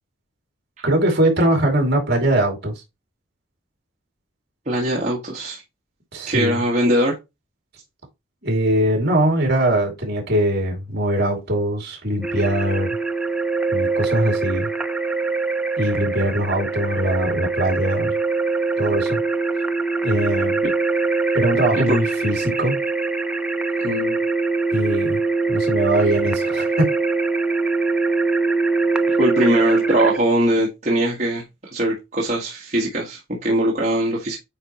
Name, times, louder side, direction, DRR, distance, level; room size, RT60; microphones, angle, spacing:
voice 1, 0.8-2.7 6.1-6.6 8.4-12.9 13.7-14.7 15.8-18.1 18.8-19.2 20.0-20.6 21.3-22.8 24.7-25.2 25.5-26.9, right 1 dB, 50° right, 2.7 m, -21 dB
voice 2, 4.6-5.6 6.3-7.1 21.7-22.0 23.8-24.2 29.1-31.4 31.7-34.4, right 1 dB, 35° right, 1.6 m, -21 dB
sound 1, 12.2-30.2, right 3 dB, 5° right, 0.4 m, -23 dB
8.8 x 4.5 x 3.0 m
head